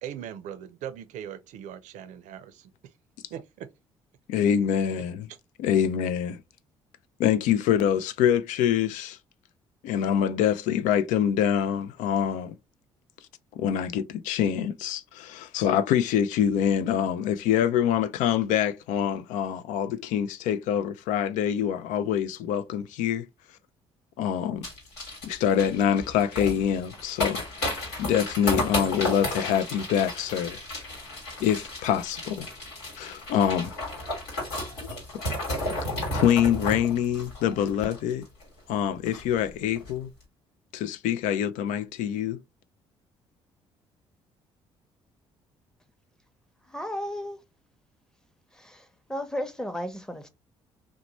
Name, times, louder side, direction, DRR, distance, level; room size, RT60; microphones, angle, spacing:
voice 1, 0.0-2.7 3.3-3.7 5.3-5.4, right 10 dB, 65° right, 0.5 m, -39 dB
voice 2, 4.3-5.3 5.6-6.4 7.2-9.2 9.8-12.6 13.6-23.3 24.2-24.7 25.2-27.4 28.0-30.6 31.4-32.5 33.0-33.7 36.1-38.3 38.7-40.1 40.7-42.4, left 9 dB, 70° left, 0.4 m, -25 dB
sound 1, 24.6-38.4 38.7-38.8 39.1-39.4 39.7-39.9, left 1 dB, 90° left, 1.3 m, -33 dB
voice 3, 46.7-47.4 48.5-50.3, equal, 5° left, 0.8 m, -34 dB
2.9 x 2.1 x 2.9 m
hypercardioid pair, 55°, 14 cm